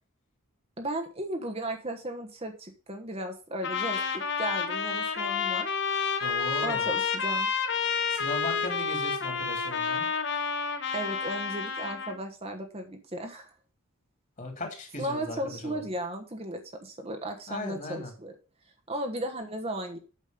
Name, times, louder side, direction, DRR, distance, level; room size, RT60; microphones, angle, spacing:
voice 1, 0.8-5.8 6.6-7.5 10.9-13.5 15.0-18.3 18.9-20.0, right 1 dB, 30° right, 4 dB, 1.2 m, -35 dB
Trumpet, 3.6-12.2, left 6 dB, 55° left, 1.2 m, -29 dB
voice 2, 6.2-6.9 8.1-10.1 14.4-15.8 17.5-18.1, left 2 dB, 35° left, 3 dB, 2.9 m, -37 dB
8.5 x 6.4 x 5.1 m, 0.35 s
head